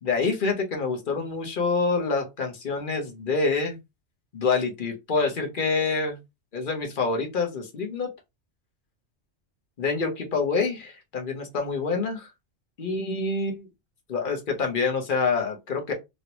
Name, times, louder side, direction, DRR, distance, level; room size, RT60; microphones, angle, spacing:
voice 1, 0.0-3.8 4.3-6.2 6.5-8.1 9.8-12.3 12.8-13.7 14.1-15.9, left 4 dB, 45° left, 1.0 m, -26 dB
3.0 x 2.9 x 2.9 m
omnidirectional pair, 1.3 m